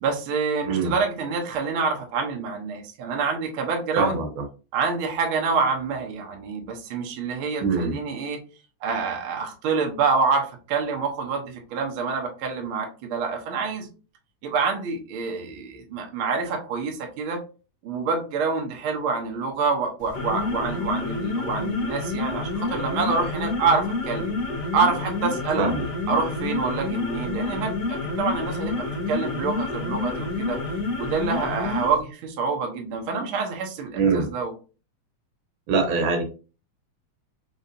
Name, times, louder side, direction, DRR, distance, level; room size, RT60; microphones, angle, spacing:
voice 1, 0.0-4.2 4.7-8.4 8.8-13.9 14.4-17.4 17.8-24.3 24.7-25.7 26.1-30.6 31.0-34.5, right 4 dB, 65° right, 2 dB, 1.4 m, -27 dB
voice 2, 4.0-4.3 7.6-8.0 25.6-25.8 34.0-34.3 35.7-36.2, right 4 dB, 80° right, 3 dB, 2.4 m, -23 dB
sound 1, 20.0-32.0, left 3 dB, 65° left, 1.0 m, -28 dB
5.3 x 3.0 x 2.7 m, 0.34 s
omnidirectional pair, 3.4 m